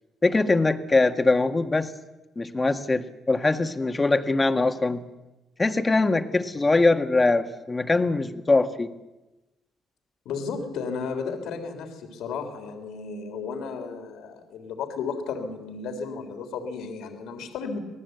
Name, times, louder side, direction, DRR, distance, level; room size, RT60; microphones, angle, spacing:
voice 1, 0.2-1.9 2.4-5.0 5.6-8.9, left 3 dB, 25° left, 6 dB, 1.8 m, -22 dB
voice 2, 10.3-17.8, left 5 dB, 85° left, 5 dB, 3.5 m, -33 dB
26.5 x 18.5 x 8.0 m, 1.1 s
cardioid pair, 90°, 0 cm